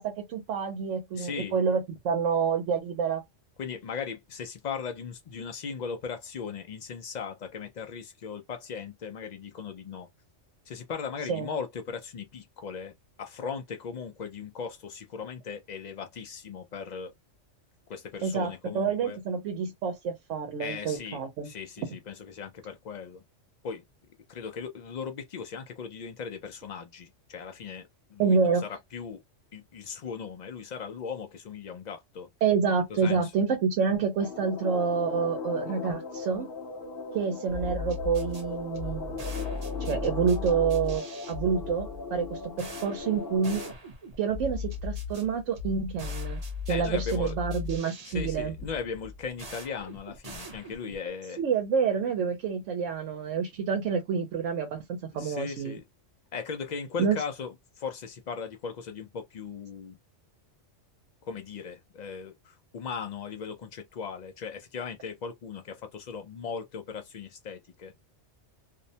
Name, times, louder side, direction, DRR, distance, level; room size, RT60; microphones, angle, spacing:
voice 1, 0.0-3.2 11.3-11.5 18.2-21.5 28.2-28.6 32.4-36.5 37.1-43.6 44.2-46.4 46.7-48.5 51.4-55.8 57.0-57.2, right 6 dB, 80° right, 0.9 m, -28 dB
voice 2, 1.1-1.5 3.6-10.1 10.7-12.9 13.2-17.1 17.9-19.2 20.6-23.2 23.6-23.8 24.3-29.2 29.5-32.3 32.9-33.3 46.7-47.3 48.0-51.4 55.1-55.8 56.3-60.0 61.2-67.9, left 6 dB, 70° left, 0.4 m, -38 dB
sound 1, 34.2-43.7, left 4 dB, 55° left, 0.8 m, -38 dB
sound 2, 37.5-51.1, left 4 dB, 35° right, 0.7 m, -38 dB
2.6 x 2.1 x 2.7 m
omnidirectional pair, 1.3 m